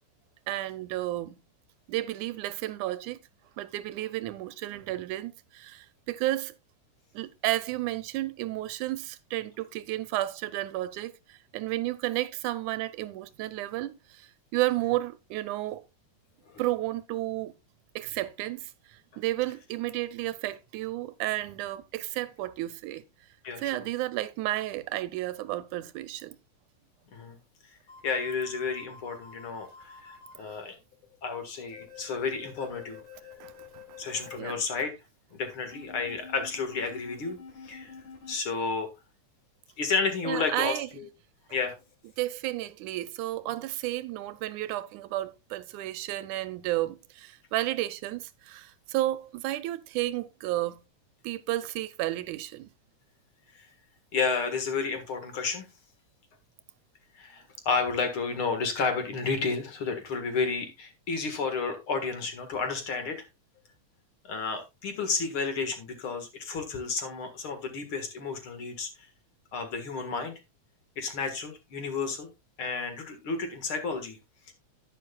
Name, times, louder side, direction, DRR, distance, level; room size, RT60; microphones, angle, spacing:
voice 1, 0.5-1.4 1.9-3.2 3.6-6.5 7.1-15.8 16.6-17.5 18.0-23.0 23.6-26.4 30.4-30.6 33.4-33.8 34.4-34.6 40.3-40.9 42.2-50.8 51.2-52.7, right 16 dB, 80° right, 2.1 m, -32 dB
voice 2, 23.4-23.8 27.1-27.4 28.0-30.7 31.2-33.0 34.0-34.9 35.3-37.9 38.3-38.9 39.8-41.1 41.5-41.8 53.5-53.7 54.1-55.7 57.1-63.3 64.2-69.1 69.5-70.3 71.0-72.3 72.6-74.2 74.5-74.6, left 4 dB, 50° left, 2.2 m, -31 dB
sound 1, 27.9-30.3 31.7-34.3 35.7-38.3, left 5 dB, 80° left, 5.8 m, -48 dB
10.5 x 9.7 x 2.3 m
omnidirectional pair, 3.5 m